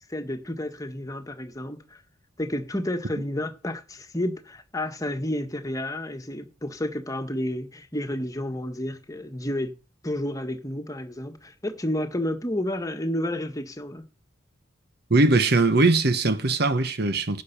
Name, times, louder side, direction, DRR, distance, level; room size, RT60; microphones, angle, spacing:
voice 1, 0.1-2.0 2.4-9.7 10.0-14.0, left 1 dB, 15° left, 1.6 m, -31 dB
voice 2, 15.1-17.4, right 2 dB, 55° right, 1.1 m, -20 dB
10.5 x 6.6 x 6.8 m
head